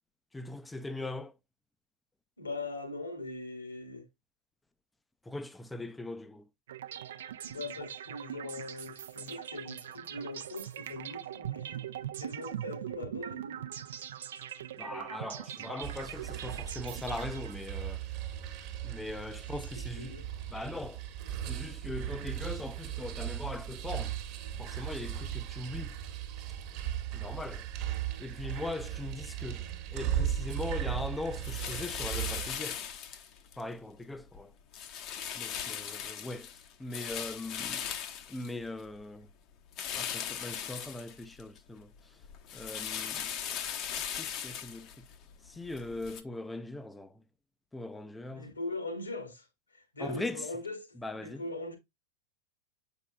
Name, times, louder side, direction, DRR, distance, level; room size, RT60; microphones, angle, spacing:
voice 1, 0.3-1.3 5.3-6.4 14.8-18.0 18.8-20.2 20.5-21.0 21.5-24.1 24.6-26.0 27.1-27.6 28.2-29.6 29.9-32.8 33.6-34.5 35.3-36.5 36.8-37.9 38.3-39.3 40.0-41.9 42.5-43.4 44.2-45.0 45.5-47.1 47.7-48.5 50.0-50.4 51.0-51.4, left 2 dB, 10° left, 0.6 m, -40 dB
voice 2, 2.4-4.1 7.4-11.9 12.2-13.6 19.5-20.3 48.3-51.8, left 2 dB, 80° left, 2.3 m, -41 dB
sound 1, 6.7-17.8, right 10 dB, 60° right, 0.6 m, -41 dB
In the Slimy Belly of the Machine, 15.8-32.6, right 10 dB, 40° right, 1.3 m, -37 dB
sound 2, 31.4-33.6 34.0-34.4 34.7-39.0 39.7-41.6 41.9-46.2, left 9 dB, 35° left, 0.9 m, -39 dB
8.1 x 5.4 x 2.2 m
figure-of-eight pair, 90°, 0 cm